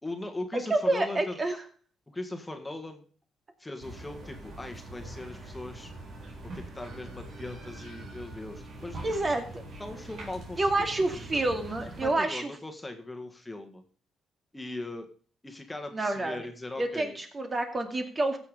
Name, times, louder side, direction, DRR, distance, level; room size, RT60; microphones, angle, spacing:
voice 1, 0.0-1.4 2.1-3.0 3.6-5.9 6.4-9.3 9.8-10.9 11.1-11.4 12.0-13.8 14.5-15.1 15.4-17.2, left 2 dB, 15° left, 5 dB, 1.8 m, -39 dB
voice 2, 0.7-1.6 9.0-9.6 10.6-12.5 15.9-16.4 16.8-18.4, right 2 dB, 30° right, 5 dB, 2.4 m, -28 dB
sound 1, 3.8-12.1, right 1 dB, 60° right, 3.8 m, -43 dB
15.5 x 7.1 x 5.1 m, 0.43 s
cardioid pair, 90°, 0 cm